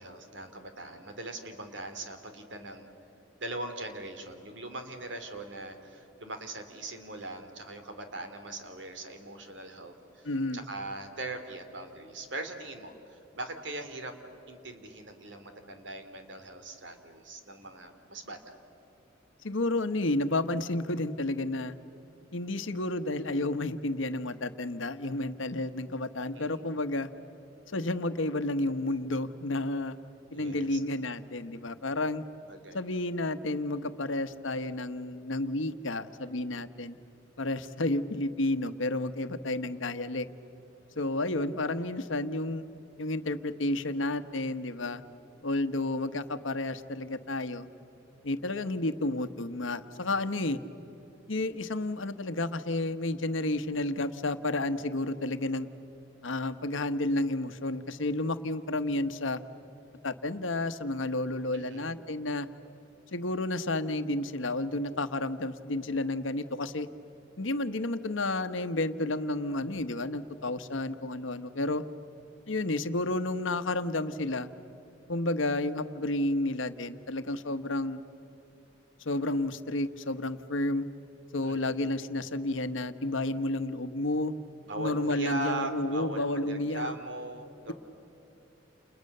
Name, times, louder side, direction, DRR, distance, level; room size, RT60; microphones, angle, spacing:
voice 1, 0.0-2.9 3.4-14.1 14.5-18.4 26.3-26.6 30.3-30.8 32.5-32.8 50.1-50.4 61.5-61.9 81.4-81.8 84.6-87.7, right 2 dB, 65° right, 7 dB, 2.9 m, -40 dB
voice 2, 10.2-10.6 19.4-21.8 22.3-27.1 27.7-30.0 30.3-32.2 32.7-37.0 37.4-40.3 41.0-42.6 43.0-45.0 45.4-47.7 48.2-50.6 51.3-55.7 56.2-59.4 60.0-62.5 63.1-66.9 67.4-71.8 72.5-74.5 75.1-78.0 79.0-80.8 81.3-84.3 84.8-86.9, left 2 dB, 85° left, 10 dB, 1.1 m, -31 dB
30.0 x 29.5 x 6.7 m, 3.0 s
head